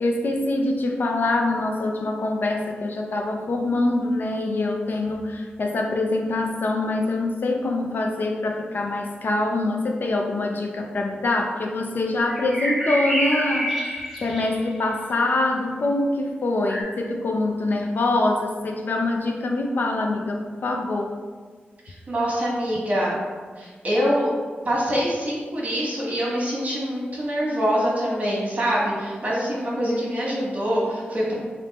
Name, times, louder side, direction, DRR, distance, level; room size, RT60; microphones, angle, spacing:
voice 1, 0.0-21.2, left 2 dB, 60° left, 2 dB, 0.4 m, -24 dB
sound 1, 12.3-14.8 16.7-16.8, equal, 5° right, 0.9 m, -27 dB
voice 2, 21.8-23.1 23.6-24.3 24.6-31.3, equal, 40° right, -5 dB, 1.3 m, -24 dB
3.4 x 2.5 x 4.1 m, 1.5 s
wide cardioid pair, 110°, 4 cm